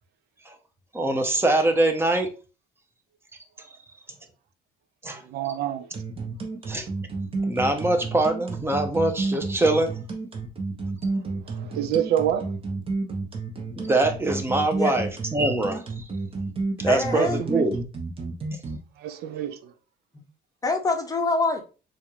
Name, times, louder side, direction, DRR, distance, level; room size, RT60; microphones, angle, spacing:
voice 1, 0.9-2.3 5.0-5.2 6.7-6.9 7.4-9.9 13.8-16.1 16.8-17.8, right 2 dB, 15° right, 0.8 m, -23 dB
voice 2, 5.2-5.9 11.1-12.5 17.1-17.7 19.0-19.7, right 10 dB, 70° right, 0.4 m, -28 dB
sound 1, 5.9-18.8, right 3 dB, 35° right, 0.9 m, -30 dB
voice 3, 16.9-17.4 20.1-20.2 20.6-21.6, left 3 dB, 20° left, 0.7 m, -25 dB
4.1 x 2.5 x 3.1 m
cardioid pair, 110°, 17 cm